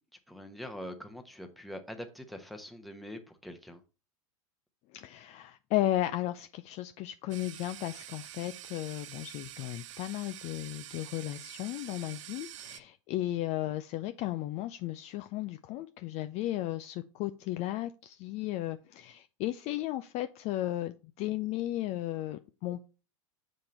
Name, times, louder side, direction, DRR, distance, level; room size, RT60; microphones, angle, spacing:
voice 1, 0.3-3.8, equal, ahead, 5 dB, 1.0 m, -44 dB
voice 2, 4.9-22.9, left 14 dB, 40° left, 9 dB, 0.4 m, -35 dB
sound 1, 7.3-12.8, right 13 dB, 65° right, 0.4 m, -47 dB
7.1 x 3.8 x 4.3 m, 0.32 s
hypercardioid pair, 90°, 18 cm